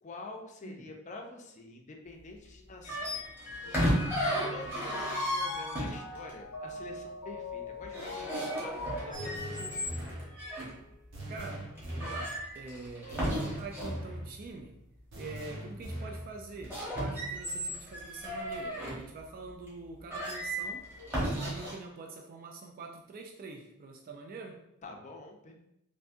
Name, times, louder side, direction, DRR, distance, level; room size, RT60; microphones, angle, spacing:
voice 1, 0.0-3.9 4.2-10.2 13.0-13.3 24.8-25.5, left 2 dB, 35° left, 2 dB, 0.5 m, -47 dB
Mallet percussion, 2.8-10.6, left 3 dB, 85° left, 0.7 m, -43 dB
sound 1, 2.8-6.3 7.8-10.7 11.3-11.4 11.8-14.0 16.5-19.0 19.7-19.8 20.1-21.7, equal, 10° right, 1.2 m, -34 dB
sound 2, 9.1-10.3 11.1-12.3 13.1-14.3 15.1-16.3, right 1 dB, 65° right, 1.0 m, -41 dB
voice 2, 11.3-14.8 15.2-20.9 21.3-24.6, right 3 dB, 40° right, 1 dB, 0.3 m, -45 dB
3.5 x 2.6 x 2.6 m, 0.82 s
head